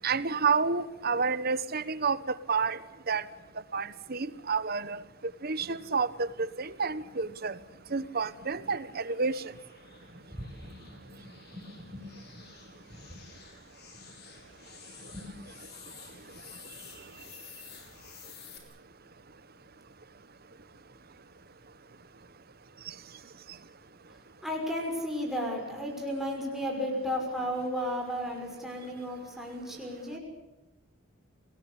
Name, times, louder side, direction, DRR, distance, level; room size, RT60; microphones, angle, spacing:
voice 1, 0.0-2.8 3.1-3.2 3.7-5.0 5.4-6.3 6.6-7.6 7.9-9.4, right 5 dB, 50° right, 16 dB, 1.1 m, -29 dB
sound 1, 7.0-18.6, left 6 dB, 55° left, 5.4 m, -52 dB
voice 2, 7.9-8.5 9.9-12.4 12.9-13.2 13.8-14.1 15.0-15.3 24.1-30.2, equal, ahead, -1 dB, 6.0 m, -35 dB
27.0 x 20.0 x 8.2 m, 1.1 s
head